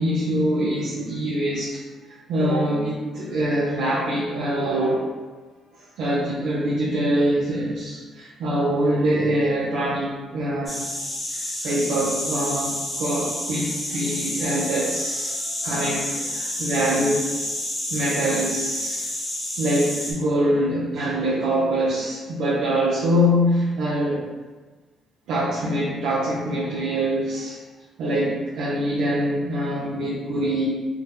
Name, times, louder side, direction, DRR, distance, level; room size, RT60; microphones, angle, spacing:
voice 1, 0.0-1.8 2.3-5.3 5.7-10.9 11.3-17.3 17.9-19.0 19.6-24.3 25.3-27.6 28.0-30.7, right 1 dB, 85° right, -5 dB, 0.5 m, -24 dB
sound 1, 10.7-20.1, left 1 dB, 15° left, 0.9 m, -29 dB
2.7 x 2.0 x 3.6 m, 1.3 s
cardioid pair, 90°, 0 cm